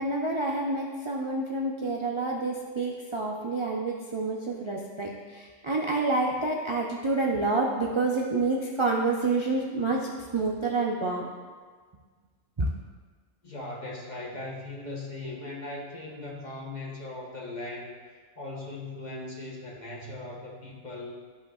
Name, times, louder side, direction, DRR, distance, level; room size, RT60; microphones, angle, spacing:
voice 1, 0.0-11.3 12.6-12.7, right 3 dB, 35° right, -2 dB, 0.5 m, -28 dB
voice 2, 13.4-18.0 18.4-21.1, left 2 dB, 35° left, -2 dB, 1.2 m, -39 dB
13.0 x 5.5 x 2.4 m, 1.5 s
omnidirectional pair, 1.3 m